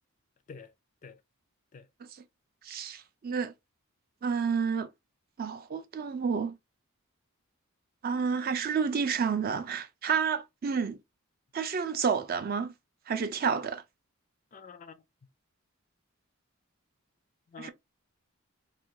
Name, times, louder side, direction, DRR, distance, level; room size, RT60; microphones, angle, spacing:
voice 1, 2.6-3.5 4.2-4.9 5.4-6.6 8.0-11.0 11.5-12.7 13.1-13.8 17.6-17.7, right 6 dB, 45° right, 0.4 m, -30 dB
voice 2, 14.5-15.0 17.5-17.7, left 5 dB, 35° left, 0.4 m, -47 dB
2.5 x 2.4 x 2.9 m
head